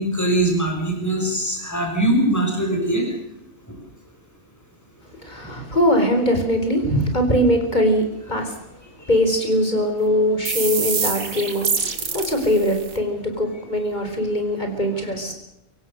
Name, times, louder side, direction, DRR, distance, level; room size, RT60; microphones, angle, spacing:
voice 1, 0.0-3.0 3.7-3.8 5.5-5.6 9.0-9.1, right 1 dB, 10° left, 1 dB, 6.1 m, -22 dB
voice 2, 5.2-8.5 9.1-11.7 12.1-15.3, equal, 30° left, 4 dB, 4.9 m, -21 dB
sound 1, 10.5-13.0, right 5 dB, 85° right, 2.6 m, -26 dB
25.0 x 16.5 x 6.7 m, 0.83 s
omnidirectional pair, 1.4 m